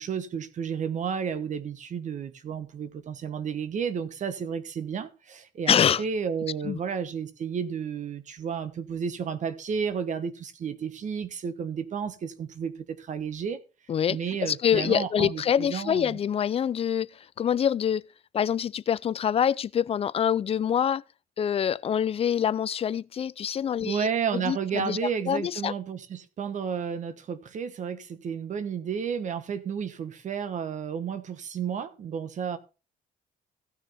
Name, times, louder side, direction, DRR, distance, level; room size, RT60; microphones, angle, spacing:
voice 1, 0.0-13.6 14.1-16.2 23.8-32.6, right 7 dB, 45° right, 1.3 m, -32 dB
voice 2, 5.7-6.0 6.6-6.8 13.9-18.0 18.3-21.0 21.4-24.1 24.3-25.0 25.3-25.7, left 8 dB, 35° left, 0.5 m, -25 dB
15.5 x 6.5 x 4.2 m
cardioid pair, 110°, 17 cm